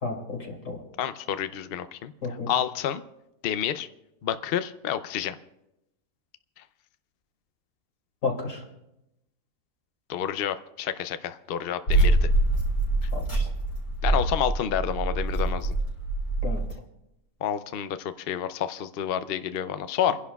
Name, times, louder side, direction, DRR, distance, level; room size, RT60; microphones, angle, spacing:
voice 1, 0.0-0.8 2.2-2.5 8.2-8.6 13.1-13.5 16.4-16.6, left 4 dB, 55° left, 0 dB, 2.8 m, -32 dB
voice 2, 1.0-2.1 2.5-3.0 3.4-3.9 4.2-5.4 10.1-12.3 14.0-15.7 17.4-20.2, left 9 dB, 70° left, 11 dB, 0.5 m, -29 dB
sound 1, 11.9-16.7, right 2 dB, 85° left, 4.9 m, -25 dB
29.5 x 11.0 x 2.3 m, 0.88 s
omnidirectional pair, 1.6 m